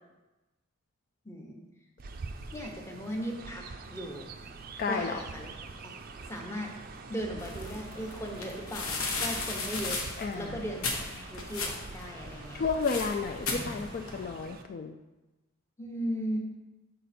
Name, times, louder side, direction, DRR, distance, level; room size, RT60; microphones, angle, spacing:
voice 1, 1.2-1.6 2.5-3.6 3.9-4.3 4.9-5.5 5.8-5.9 6.3-6.7 7.1-10.0 10.3-12.7 15.8-16.4, equal, 15° left, 1 dB, 0.8 m, -37 dB
Chirp tweet, 2.0-14.6, right 3 dB, 45° right, 0.4 m, -45 dB
voice 2, 4.8-5.2 10.2-10.6 12.5-15.0, left 4 dB, 45° left, 4 dB, 0.3 m, -32 dB
sound 1, 7.4-14.3, left 3 dB, 85° left, 1.1 m, -36 dB
6.8 x 5.0 x 4.2 m, 1.1 s
head